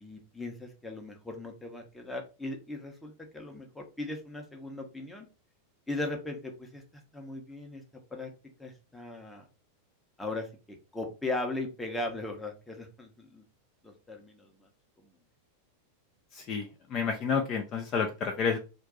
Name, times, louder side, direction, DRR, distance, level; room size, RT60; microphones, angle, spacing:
voice 1, 0.0-5.3 5.9-6.8 7.1-7.8 8.1-8.3 8.6-9.4 10.2-10.5 10.9-13.4 13.8-14.7, left 2 dB, 5° left, 2 dB, 0.8 m, -38 dB
voice 2, 16.3-18.6, left 6 dB, 35° left, 4 dB, 0.5 m, -30 dB
2.6 x 2.2 x 3.7 m, 0.32 s
figure-of-eight pair, 90°, 0 cm